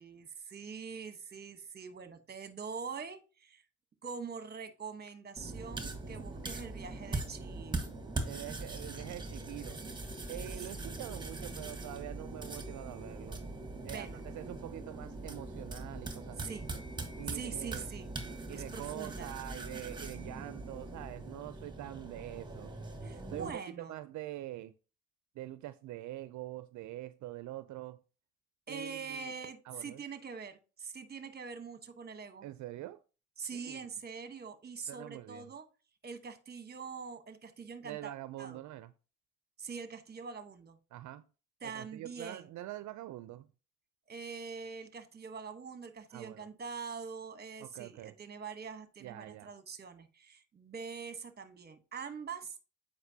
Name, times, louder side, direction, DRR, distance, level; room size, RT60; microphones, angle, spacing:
voice 1, 0.0-3.6 4.0-7.9 10.7-11.2 13.8-14.2 16.4-16.7 17.3-18.1 18.5-19.3 23.0-24.0 28.7-32.5 33.4-35.7 36.0-38.1 38.4-38.6 39.6-40.8 41.6-42.5 44.1-52.7, right 5 dB, 35° right, 1.0 m, -44 dB
sound 1, 5.4-23.5, right 2 dB, 15° right, 1.4 m, -41 dB
voice 2, 8.2-9.8 10.3-13.4 13.8-16.6 17.2-17.9 18.5-22.7 23.3-24.7 25.4-28.0 28.7-29.3 29.7-30.0 32.4-33.0 33.5-33.8 34.9-35.5 37.8-38.9 40.9-41.2 41.6-43.5 46.1-46.5 47.6-48.1 49.0-49.5, right 15 dB, 70° right, 0.4 m, -45 dB
8.0 x 5.1 x 2.7 m
cardioid pair, 90°, 30 cm